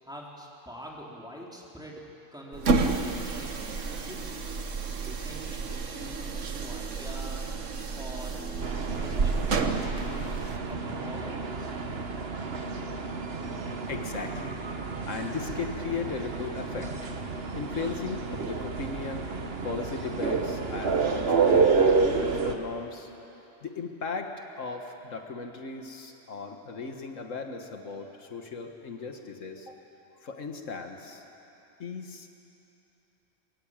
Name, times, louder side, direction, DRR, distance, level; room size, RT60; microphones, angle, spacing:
voice 1, 0.0-2.0 2.3-4.5 4.9-7.5 7.9-8.4 9.0-10.4 10.7-11.7, equal, 5° right, -3 dB, 3.6 m, -45 dB
sound 1, 2.5-10.6, right 4 dB, 75° right, 1.6 m, -30 dB
sound 2, 8.3-13.9, right 5 dB, 25° right, 8.2 m, -49 dB
sound 3, 8.6-22.6, right 4 dB, 55° right, 1.5 m, -29 dB
voice 2, 13.7-14.6 15.1-17.1 17.5-19.3 19.6-23.1 23.6-29.8 30.2-31.2 31.8-32.3, left 4 dB, 80° left, 4 dB, 1.9 m, -37 dB
23.0 x 22.5 x 8.9 m, 2.9 s
omnidirectional pair, 1.3 m